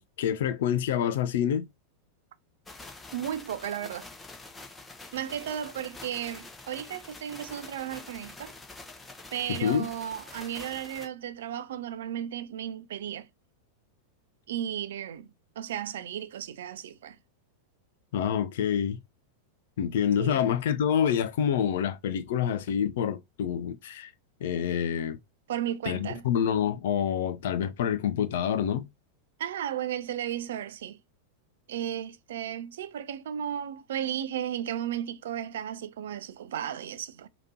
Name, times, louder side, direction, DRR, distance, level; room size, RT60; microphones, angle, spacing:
voice 1, 0.0-1.7 9.5-9.9 18.1-19.0 19.8-24.1 24.4-25.2 25.8-28.9, left 8 dB, 55° left, 0.6 m, -27 dB
sound 1, 2.7-11.1, left 3 dB, 10° left, 1.1 m, -46 dB
voice 2, 3.1-4.1 5.1-8.5 9.3-13.3 14.5-15.3 15.6-17.2 20.2-20.5 25.5-26.2 29.4-31.0 31.7-37.3, right 10 dB, 60° right, 0.5 m, -34 dB
4.9 x 2.9 x 2.9 m
figure-of-eight pair, 90°, 0 cm